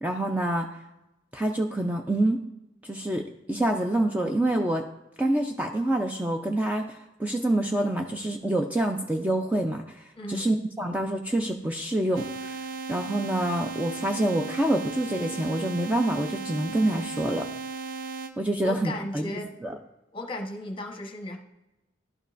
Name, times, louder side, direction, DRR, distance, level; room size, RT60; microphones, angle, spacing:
voice 1, 0.0-0.7 1.3-2.4 2.8-4.9 5.2-12.6 12.9-17.5 18.4-19.8, right 1 dB, 10° right, 3 dB, 0.4 m, -27 dB
voice 2, 10.2-10.5 18.6-19.5 20.1-21.4, left 1 dB, 30° left, 3 dB, 1.0 m, -35 dB
sound 1, 12.1-18.3, right 4 dB, 75° right, 0.6 m, -36 dB
11.5 x 5.3 x 2.5 m, 0.94 s
head